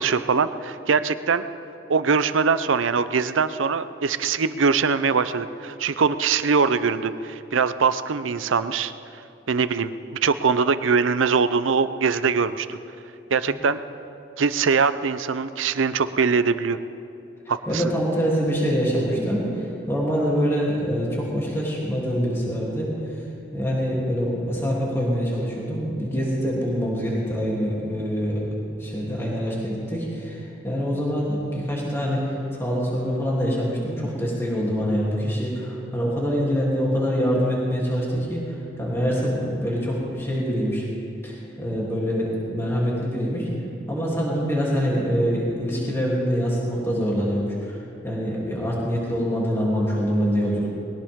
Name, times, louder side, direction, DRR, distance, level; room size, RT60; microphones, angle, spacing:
voice 1, 0.0-1.4 1.9-8.9 9.5-9.9 10.2-12.8 13.3-13.8 14.4-16.8 17.5-17.8, right 5 dB, 90° right, 13 dB, 0.6 m, -22 dB
voice 2, 17.7-22.9 23.5-28.4 28.8-32.2 32.5-40.8 41.2-43.5 43.9-47.8 48.0-50.7, equal, 15° left, -5 dB, 3.0 m, -25 dB
21.0 x 18.0 x 3.7 m, 2.8 s
head